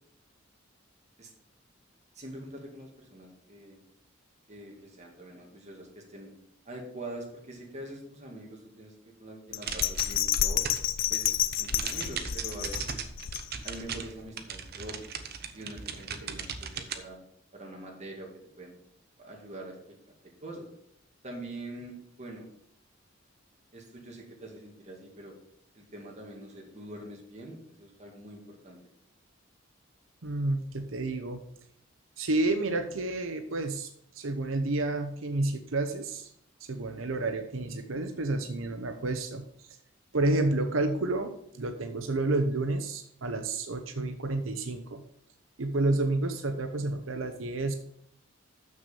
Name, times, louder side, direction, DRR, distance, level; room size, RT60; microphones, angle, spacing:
voice 1, 2.1-3.8 4.5-6.3 6.6-8.9 9.2-10.6 11.1-13.0 13.6-15.1 15.5-17.2 17.5-18.3 18.6-18.7 19.2-20.0 20.4-20.7 21.2-22.5 23.7-25.3 25.7-28.8, right 1 dB, 35° right, -1 dB, 2.4 m, -44 dB
Bell, 9.5-13.9 14.3-14.4, left 11 dB, 70° left, 0.5 m, -30 dB
sound 1, 9.6-11.0 11.3-17.0, right 6 dB, 55° right, 0.9 m, -38 dB
voice 2, 30.2-31.4 32.2-36.3 36.6-39.8 40.1-45.0 45.6-47.7, right 2 dB, 90° right, 6 dB, 0.8 m, -30 dB
6.8 x 6.5 x 6.9 m, 0.70 s
head